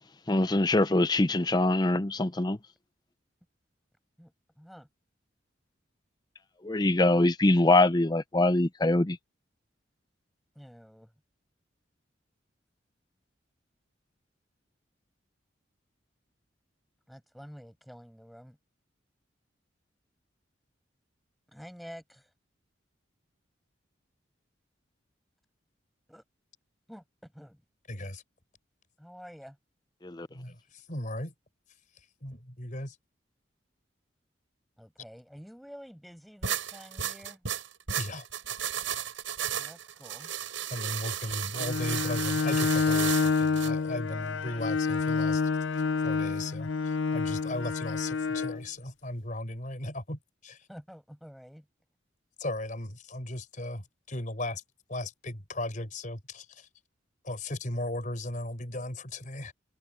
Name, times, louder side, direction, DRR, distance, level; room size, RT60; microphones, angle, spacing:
voice 1, 0.3-2.6 6.6-9.2 30.0-30.3, left 2 dB, 20° left, 0.6 m, -23 dB
voice 2, 4.2-4.9 10.5-11.1 17.1-18.6 21.5-22.3 26.1-26.2 26.9-27.6 29.0-29.6 34.8-37.5 39.5-40.3 50.7-51.7, equal, ahead, 6.6 m, -49 dB
voice 3, 27.9-28.2 30.3-31.3 32.2-33.0 38.0-38.3 40.7-45.4 46.0-50.7 52.4-54.6 54.9-56.7 57.2-59.5, left 1 dB, 40° left, 4.9 m, -36 dB
sound 1, 36.4-43.7, right 9 dB, 90° right, 6.5 m, -34 dB
Bowed string instrument, 41.6-48.6, left 4 dB, 85° left, 0.7 m, -28 dB
head